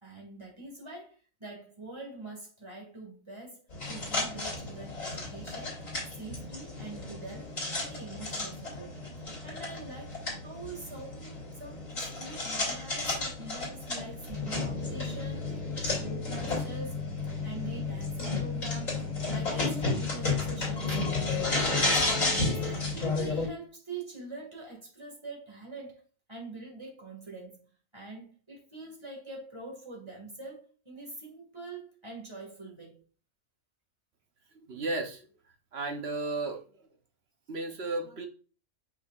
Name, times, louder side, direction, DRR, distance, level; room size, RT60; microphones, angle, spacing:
voice 1, 0.0-5.8 6.1-15.5 16.0-17.0 17.4-19.0 19.3-21.0 21.3-26.0 26.3-27.7 27.9-33.0, right 3 dB, 20° right, 2.2 m, -44 dB
sound 1, 3.7-23.5, left 3 dB, 80° left, 3.3 m, -32 dB
voice 2, 34.7-35.3 35.7-36.6 37.5-38.3, right 2 dB, 55° right, 1.2 m, -33 dB
6.3 x 6.0 x 2.5 m
omnidirectional pair, 1.4 m